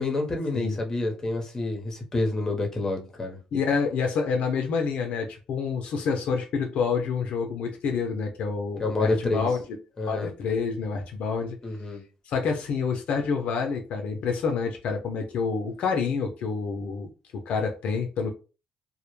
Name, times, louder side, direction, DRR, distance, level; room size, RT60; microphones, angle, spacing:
voice 1, 0.0-3.4 8.8-9.5 10.0-10.3 11.6-12.0, left 2 dB, 20° left, 0.7 m, -28 dB
voice 2, 3.5-9.6 10.1-11.6 12.3-18.3, left 5 dB, 70° left, 0.4 m, -28 dB
2.1 x 2.0 x 3.0 m
cardioid pair, 100°, 2 cm